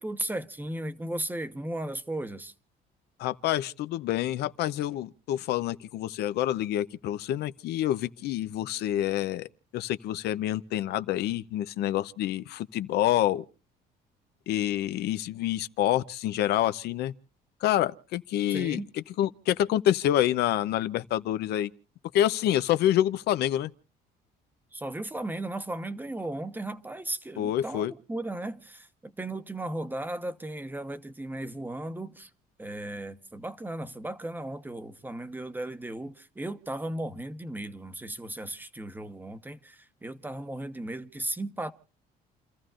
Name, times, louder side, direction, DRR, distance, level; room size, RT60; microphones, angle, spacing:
voice 1, 0.0-2.5 18.5-18.9 24.7-32.3 32.6-41.7, right 1 dB, 10° right, 1.0 m, -36 dB
voice 2, 3.2-9.5 9.7-13.4 14.5-17.1 17.6-18.8 19.2-21.7 22.1-23.7 27.4-27.9, left 12 dB, 75° left, 0.7 m, -27 dB
29.0 x 14.0 x 2.5 m
cardioid pair, 110°, 17 cm